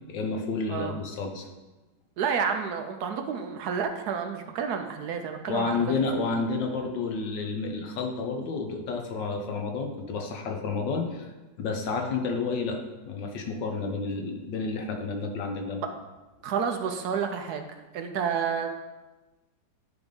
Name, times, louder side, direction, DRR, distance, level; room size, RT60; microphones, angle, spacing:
voice 1, 0.1-1.5 5.5-11.3 11.6-12.8 13.0-15.8, left 4 dB, 85° left, 4 dB, 1.6 m, -30 dB
voice 2, 2.2-5.8 6.2-6.3 15.8-15.9 16.4-18.8, right 6 dB, 70° right, 6 dB, 1.1 m, -30 dB
10.5 x 3.5 x 5.2 m, 1.1 s
omnidirectional pair, 1.9 m